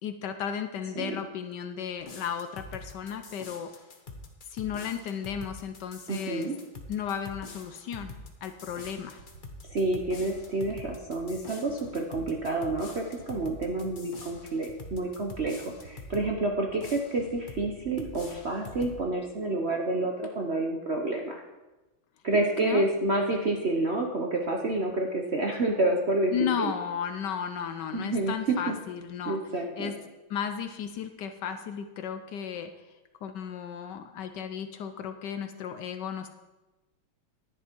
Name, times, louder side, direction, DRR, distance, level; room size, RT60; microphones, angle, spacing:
voice 1, 0.0-3.7 4.5-6.5 6.9-8.1 8.4-9.2 22.6-22.8 26.3-29.4 29.8-29.9 30.3-32.7 33.2-36.3, left 8 dB, 70° left, 8 dB, 1.1 m, -34 dB
sound 1, 2.0-16.3 16.8-17.7 18.0-19.0, left 3 dB, 35° left, 0.8 m, -45 dB
voice 2, 6.1-6.5 9.7-21.4 22.2-26.7 27.9-28.3 28.7-28.8 29.3-29.9, right 2 dB, 50° right, 1 dB, 0.8 m, -29 dB
sound 2, 8.7-8.9 9.2-9.4 9.7-9.9 10.2-10.4 10.7-10.9 11.2-11.4 11.7-11.9 12.2-12.4 12.7-12.9 13.2-13.4 13.7-13.9 14.2-14.4 14.7-14.9 15.2-15.4 15.7-15.9 16.2-16.4 16.7-16.9 17.2-17.4 17.7-17.9 18.2-18.4 18.7-18.9, right 6 dB, 85° right, 2.2 m, -50 dB
10.5 x 10.0 x 4.5 m, 1.1 s
omnidirectional pair, 2.2 m